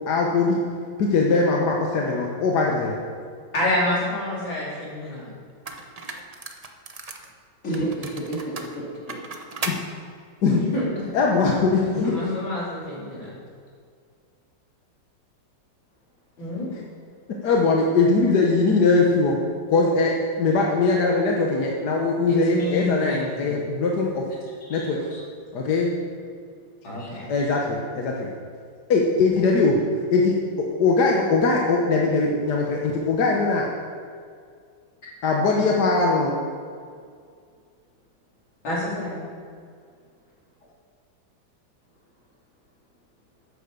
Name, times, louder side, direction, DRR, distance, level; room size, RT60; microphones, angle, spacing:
voice 1, 0.1-0.6 1.0-3.0 9.7-9.8 10.4-10.6 11.1-12.2 17.4-19.4 19.7-24.2 24.7-25.0 25.5-25.9 27.3-28.3 28.9-29.8 30.1-33.7 35.2-36.3, left 3 dB, 60° left, -1 dB, 1.5 m, -21 dB
voice 2, 3.5-5.3 10.5-11.1 11.8-13.3 16.4-16.7 22.3-23.5 26.8-27.3 38.6-39.2, left 1 dB, 85° left, -7 dB, 4.4 m, -28 dB
sound 1, 5.0-5.1 5.7-7.3 7.7-9.8, right 3 dB, 55° right, 0.4 m, -35 dB
voice 3, 7.6-9.2 24.4-25.2 27.0-27.1, right 1 dB, 40° left, -6 dB, 3.2 m, -32 dB
10.0 x 8.4 x 6.9 m, 2.2 s
omnidirectional pair, 2.1 m